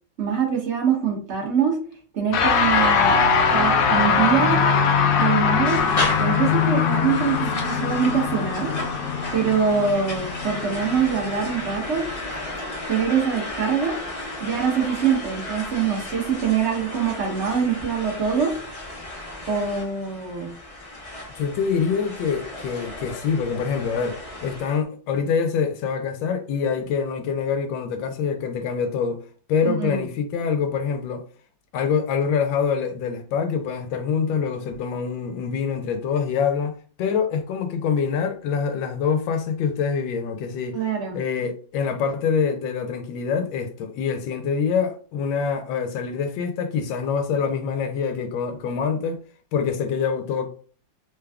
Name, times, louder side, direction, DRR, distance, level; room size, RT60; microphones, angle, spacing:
voice 1, 0.2-1.8 2.1-3.2 3.5-4.6 5.2-5.9 6.2-8.7 9.3-12.1 12.9-13.9 14.4-18.5 19.5-20.5 29.6-30.0 40.7-41.2, right 7 dB, 45° right, 1.1 m, -24 dB
sound 1, 2.3-11.8, left 6 dB, 70° left, 1.0 m, -21 dB
sound 2, 5.6-24.8, left 2 dB, 30° left, 0.6 m, -34 dB
voice 2, 21.3-29.2 29.5-31.3 31.7-40.8 41.1-49.2 49.5-50.5, left 6 dB, 90° left, 1.4 m, -25 dB
3.5 x 2.3 x 3.4 m
omnidirectional pair, 2.0 m